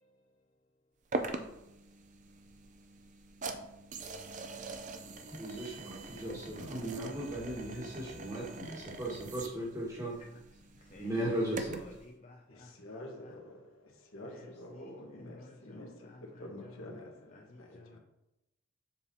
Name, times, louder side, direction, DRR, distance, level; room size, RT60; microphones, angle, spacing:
sound 1, 1.1-12.0, right 3 dB, 35° right, 0.4 m, -43 dB
voice 1, 5.1-10.2 11.0-11.8, right 1 dB, 15° right, 1.4 m, -37 dB
voice 2, 10.7-13.4 14.2-16.9 17.3-18.0, left 2 dB, 35° left, 0.4 m, -54 dB
voice 3, 12.5-18.0, left 1 dB, 85° left, 1.2 m, -48 dB
7.2 x 5.0 x 2.7 m
head